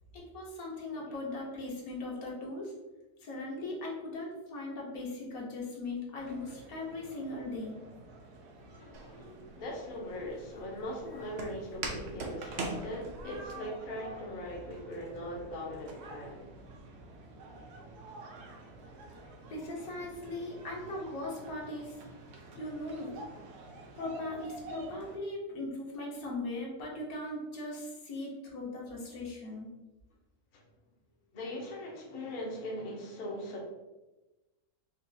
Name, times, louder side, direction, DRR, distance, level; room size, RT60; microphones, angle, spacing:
voice 1, 0.1-2.7 3.2-7.8 19.5-21.9 22.5-23.2 24.0-29.7, left 2 dB, 70° left, -2 dB, 1.3 m, -39 dB
sound 1, 6.2-25.2, right 2 dB, 85° right, 1.2 m, -49 dB
voice 2, 8.7-16.5 30.5-30.6 31.3-33.7, left 1 dB, 50° left, -2 dB, 0.6 m, -40 dB
Walk footsteps, 8.9-13.5, right 3 dB, 65° right, 0.7 m, -41 dB
4.0 x 2.3 x 2.6 m, 1.1 s
omnidirectional pair, 1.6 m